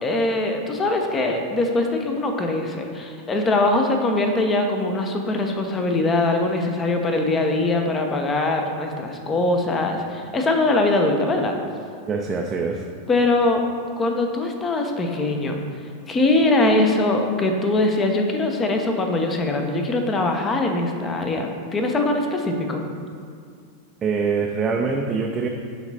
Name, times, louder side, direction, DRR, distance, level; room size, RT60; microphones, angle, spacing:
voice 1, 0.0-11.6 13.1-13.6 14.0-15.6 16.1-22.8, left 2 dB, 20° left, 4 dB, 0.9 m, -22 dB
voice 2, 12.1-12.9 24.0-25.5, right 5 dB, 20° right, 1 dB, 0.5 m, -24 dB
10.5 x 3.9 x 4.2 m, 2.2 s
figure-of-eight pair, 90°, 0 cm